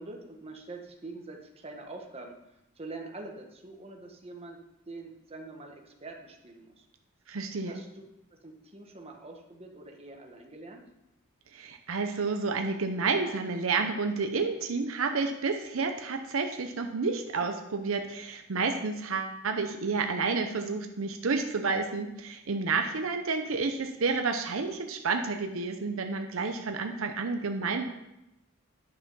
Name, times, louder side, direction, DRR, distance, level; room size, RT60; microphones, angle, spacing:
voice 1, 0.0-2.3 2.8-4.6 4.9-6.9 7.6-7.9 8.4-10.8, right 2 dB, 30° right, 1 dB, 1.2 m, -44 dB
voice 2, 7.3-7.8 11.5-27.8, right 4 dB, 75° right, 6 dB, 0.7 m, -30 dB
9.9 x 5.8 x 5.5 m, 0.90 s
head